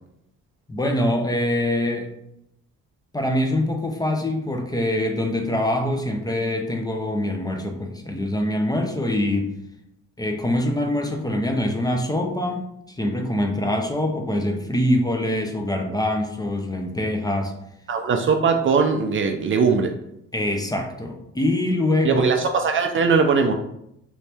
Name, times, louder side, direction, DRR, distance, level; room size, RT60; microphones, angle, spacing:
voice 1, 0.7-2.1 3.1-9.5 10.2-17.5 20.3-22.2, left 1 dB, 15° left, 3 dB, 0.5 m, -24 dB
voice 2, 17.9-19.9 22.0-23.5, right 5 dB, 45° right, 5 dB, 0.4 m, -20 dB
3.0 x 2.7 x 3.3 m, 0.79 s
cardioid pair, 90°, 30 cm